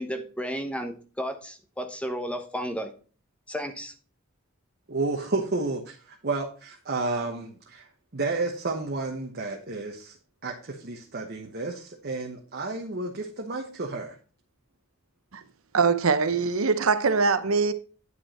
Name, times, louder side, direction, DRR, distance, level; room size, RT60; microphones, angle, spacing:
voice 1, 0.0-2.9 3.5-3.9, equal, 5° left, 0.9 m, -33 dB
voice 2, 4.9-10.2 10.4-14.2, right 3 dB, 50° right, 1.1 m, -31 dB
voice 3, 15.7-17.7, right 4 dB, 70° right, 0.7 m, -22 dB
9.7 x 5.4 x 4.3 m
head